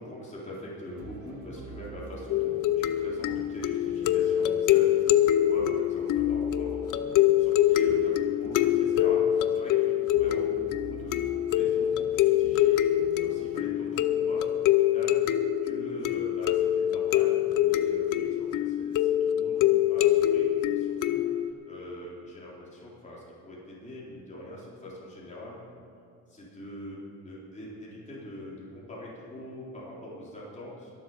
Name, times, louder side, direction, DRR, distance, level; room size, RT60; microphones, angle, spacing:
voice 1, 0.0-12.8 13.2-15.2 15.6-25.6 26.3-27.0 27.2-30.9, equal, 25° left, -7 dB, 3.8 m, -43 dB
sound 1, 0.8-13.7, right 3 dB, 80° right, 1.7 m, -46 dB
sound 2, 2.3-21.5, left 12 dB, 85° left, 0.6 m, -25 dB
22.0 x 7.6 x 5.6 m, 2.5 s
cardioid pair, 90°, 30 cm